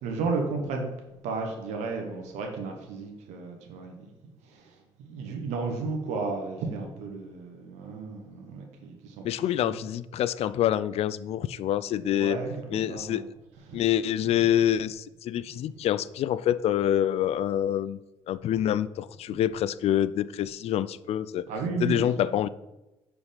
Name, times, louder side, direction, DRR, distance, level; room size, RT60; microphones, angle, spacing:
voice 1, 0.0-0.8 1.2-9.3 9.6-9.8 12.0-13.3 13.7-13.8 21.5-22.1, right 4 dB, 80° right, 2 dB, 1.2 m, -34 dB
voice 2, 9.2-12.4 12.7-13.2 13.7-18.0 18.3-21.5 21.8-22.5, left 11 dB, 60° left, 16 dB, 0.4 m, -26 dB
5.0 x 5.0 x 5.6 m, 1.0 s
supercardioid pair, 65°, 12 cm